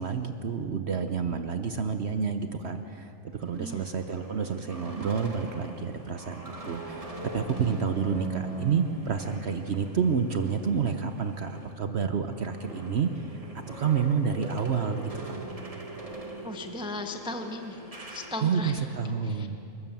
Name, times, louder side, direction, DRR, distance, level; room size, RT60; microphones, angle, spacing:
voice 1, 0.0-13.4 13.7-15.4 18.4-19.6, right 6 dB, 55° right, 7 dB, 1.0 m, -29 dB
sound 1, 3.3-11.7 12.1-18.9, right 2 dB, 25° right, 1.8 m, -42 dB
voice 2, 16.4-17.8 18.1-18.9 19.2-19.5, left 2 dB, 5° right, 5 dB, 0.8 m, -37 dB
28.0 x 12.5 x 7.4 m, 2.8 s
omnidirectional pair, 1.4 m